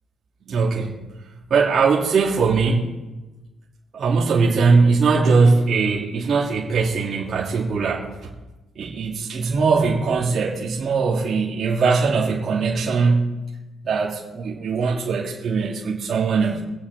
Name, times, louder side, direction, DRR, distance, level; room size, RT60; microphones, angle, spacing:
voice 1, 0.5-1.0 1.5-2.9 3.9-8.3 8.8-13.4 13.8-16.6, right 4 dB, 55° right, -5 dB, 2.6 m, -20 dB
24.5 x 8.7 x 3.6 m, 1.1 s
cardioid pair, 90°, 0 cm